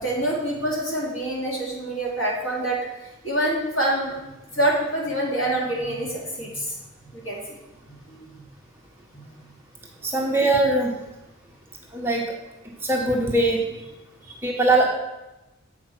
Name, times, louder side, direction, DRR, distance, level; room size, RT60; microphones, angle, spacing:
voice 1, 0.0-2.8 3.2-4.2 4.5-6.7 7.1-7.4 8.1-8.3 14.3-14.4, right 1 dB, 75° left, -4 dB, 2.8 m, -26 dB
voice 2, 10.0-10.9 11.9-12.2 12.8-13.6 14.4-14.9, right 2 dB, 10° right, -1 dB, 1.0 m, -21 dB
7.8 x 5.0 x 5.9 m, 1.0 s
head